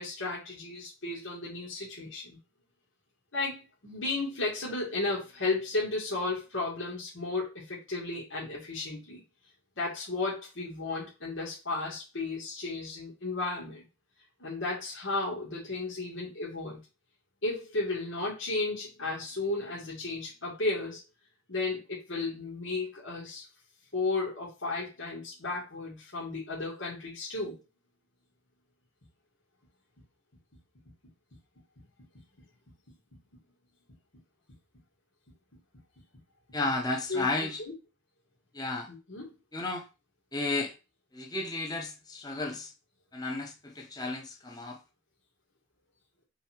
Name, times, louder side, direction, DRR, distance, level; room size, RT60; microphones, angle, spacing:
voice 1, 0.0-2.4 3.3-9.2 9.8-13.8 14.4-16.8 17.4-21.0 21.5-23.4 23.9-27.6 37.1-37.3 37.6-37.7 38.9-39.3, left 3 dB, 80° left, 2.3 m, -34 dB
voice 2, 36.5-37.6 38.5-38.9 39.5-39.8 40.3-40.7 41.1-42.7 43.1-44.8, left 2 dB, 20° left, 1.2 m, -33 dB
5.6 x 4.1 x 4.6 m
head